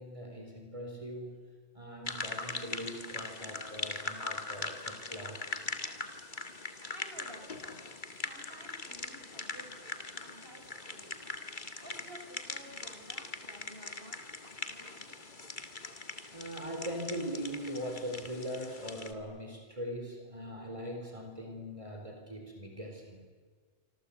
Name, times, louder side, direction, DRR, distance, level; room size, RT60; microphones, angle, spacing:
voice 1, 0.0-5.7 16.3-23.3, equal, 30° right, 2 dB, 4.1 m, -41 dB
sound 1, 2.1-19.1, left 3 dB, 45° left, 2.2 m, -41 dB
voice 2, 6.9-7.9 8.2-9.8 10.1-11.1 11.8-14.2 14.4-15.4, right 1 dB, 55° right, 2 dB, 6.7 m, -53 dB
27.0 x 26.0 x 8.5 m, 1.5 s
omnidirectional pair, 1.2 m